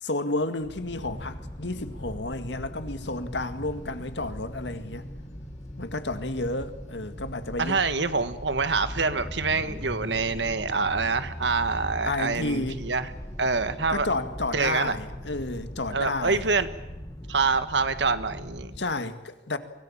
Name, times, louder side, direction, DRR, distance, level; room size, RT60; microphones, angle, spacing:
voice 1, 0.0-5.0 5.8-7.8 8.2-8.3 12.0-12.8 13.9-16.4 18.8-19.6, left 2 dB, 75° left, 2.0 m, -31 dB
sound 1, 0.6-18.9, equal, 20° left, 2.3 m, -40 dB
sound 2, 3.1-14.0, left 1 dB, 40° left, 3.9 m, -53 dB
voice 2, 7.6-13.1 13.4-14.1 14.5-15.0 15.9-16.7 17.3-18.7, right 4 dB, 75° right, 1.6 m, -26 dB
24.5 x 18.0 x 8.9 m
head